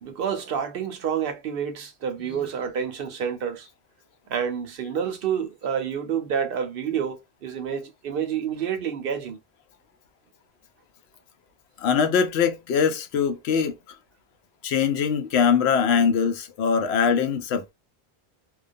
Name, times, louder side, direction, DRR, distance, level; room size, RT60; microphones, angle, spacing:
voice 1, 0.0-3.7 4.3-9.4, right 8 dB, 65° right, 0.8 m, -28 dB
voice 2, 11.8-13.7 14.6-17.7, left 6 dB, 85° left, 0.8 m, -22 dB
2.2 x 2.2 x 2.5 m
omnidirectional pair, 1.1 m